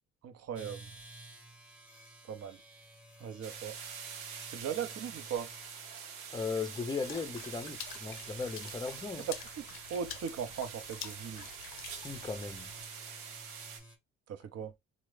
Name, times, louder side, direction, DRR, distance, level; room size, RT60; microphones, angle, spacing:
voice 1, 0.2-0.9 2.3-2.6 3.2-3.8 4.5-5.5 9.9-11.5 14.3-14.7, right 7 dB, 45° right, 0.6 m, -38 dB
sound 1, 0.5-14.0, right 1 dB, 5° right, 0.9 m, -54 dB
sound 2, 3.4-13.8, right 7 dB, 80° right, 0.7 m, -46 dB
voice 2, 6.3-9.3 11.9-12.7, left 4 dB, 15° left, 0.5 m, -37 dB
Water / Splash splatter, 7.0-12.8, left 10 dB, 75° left, 0.5 m, -48 dB
3.1 x 2.0 x 3.2 m
hypercardioid pair, 55°, 34 cm